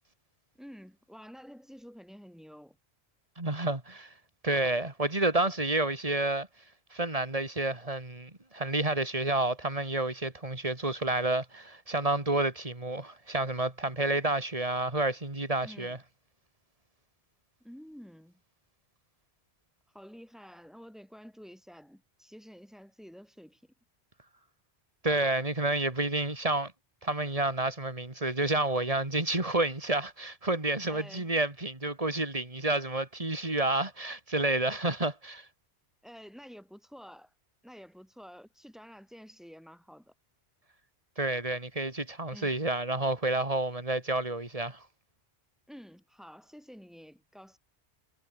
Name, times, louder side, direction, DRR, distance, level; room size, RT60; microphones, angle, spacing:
voice 1, 0.5-2.8 15.6-16.0 17.6-18.4 19.9-23.7 30.9-31.3 36.0-37.3 37.6-40.1 42.3-42.6 45.7-47.6, equal, ahead, 7.6 m, -50 dB
voice 2, 3.4-4.1 4.4-6.5 6.9-16.0 25.0-26.7 27.0-35.5 41.2-44.8, right 2 dB, 35° right, 3.0 m, -30 dB
omnidirectional pair, 1.1 m